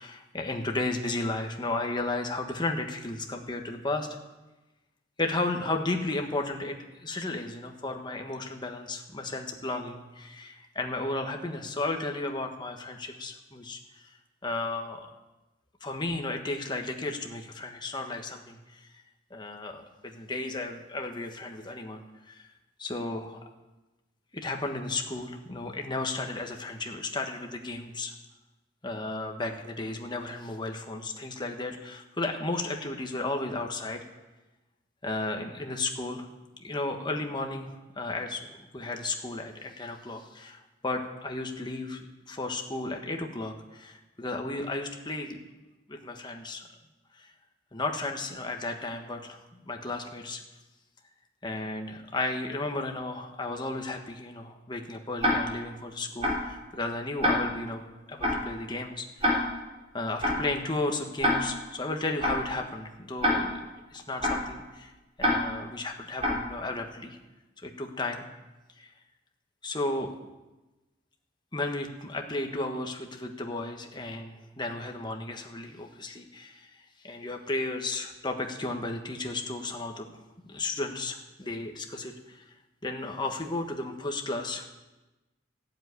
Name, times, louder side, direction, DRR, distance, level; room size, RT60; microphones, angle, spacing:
voice 1, 0.0-4.1 5.2-14.1 14.4-15.1 15.8-18.9 19.3-22.5 22.8-23.4 24.3-28.1 28.8-34.1 35.0-36.3 36.6-45.4 45.9-46.7 47.1-47.3 47.7-50.4 51.4-57.8 58.1-59.5 59.9-64.9 65.2-67.2 67.6-68.2 68.8-68.9 69.6-70.1 71.5-80.1 80.5-82.4 82.8-84.7, left 2 dB, 25° left, 3 dB, 1.5 m, -34 dB
Tick-tock, 55.2-55.7 56.2-56.6 57.2-57.7 58.2-58.6 59.2-59.7 60.2-60.6 61.2-61.7 62.2-62.6 63.2-63.7 64.2-64.6 65.2-65.7 66.2-66.6, left 1 dB, 35° right, 3.6 m, -27 dB
14.5 x 7.6 x 9.5 m, 1.1 s
head